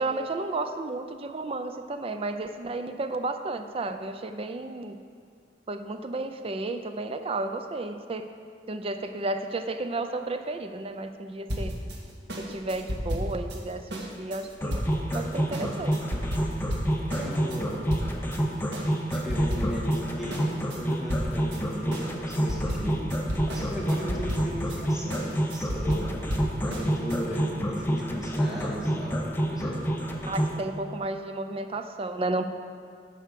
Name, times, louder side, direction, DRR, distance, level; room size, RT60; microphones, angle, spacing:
voice 1, 0.0-5.0 5.7-8.3 8.7-11.7 12.4-14.8 15.1-16.0 30.3-32.5, right 2 dB, 35° right, 8 dB, 0.5 m, -32 dB
sound 1, 11.5-18.4 18.7-20.0 20.3-27.2, equal, 80° right, 1.4 m, -33 dB
sound 2, 14.6-30.6, equal, 15° left, 0.8 m, -28 dB
voice 2, 17.1-17.9 18.2-18.5 19.1-23.0 23.5-26.1 26.6-29.8, equal, 5° right, -5 dB, 1.9 m, -36 dB
11.0 x 5.0 x 6.7 m, 2.1 s
head